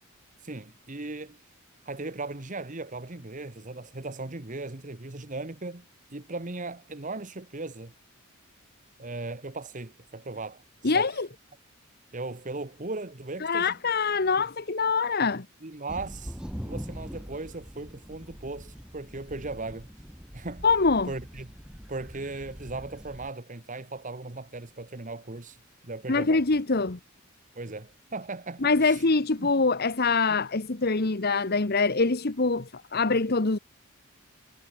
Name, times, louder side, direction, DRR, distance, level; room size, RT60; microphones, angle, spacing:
voice 1, 0.4-1.4 1.8-5.8 6.1-7.9 9.0-11.1 12.1-13.7 15.6-16.4 16.6-19.9 20.3-20.6 21.1-21.5 21.9-25.6 25.8-26.4 27.5-29.0 29.4-29.5, right 3 dB, 35° right, 1.3 m, -37 dB
voice 2, 10.8-11.3 13.4-15.4 20.6-21.1 26.1-27.0 28.6-33.6, left 4 dB, 45° left, 1.1 m, -24 dB
sound 1, 15.9-23.3, equal, 5° right, 1.6 m, -42 dB
head